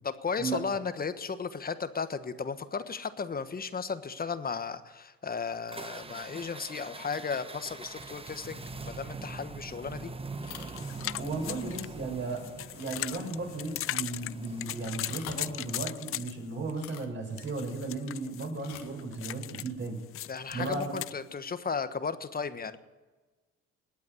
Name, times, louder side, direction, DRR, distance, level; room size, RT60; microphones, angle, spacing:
voice 1, 0.0-10.1 20.3-22.8, left 5 dB, 30° left, 11 dB, 1.3 m, -35 dB
sound 1, 5.7-15.9, right 3 dB, 15° right, 1.2 m, -43 dB
sound 2, 10.4-10.8 11.3-11.4 11.9-12.0 12.8-13.4 13.6-13.7 14.9-15.5 16.7-17.1 18.6-19.0 20.4-20.7, left 12 dB, 85° left, 1.7 m, -46 dB
sound 3, 10.8-16.7 17.4-21.1, left 14 dB, 45° left, 0.4 m, -38 dB
voice 2, 11.2-20.0 20.5-20.9, right 3 dB, 35° right, 2 dB, 5.9 m, -35 dB
20.0 x 8.4 x 7.8 m, 1.3 s
supercardioid pair, 80°, 32 cm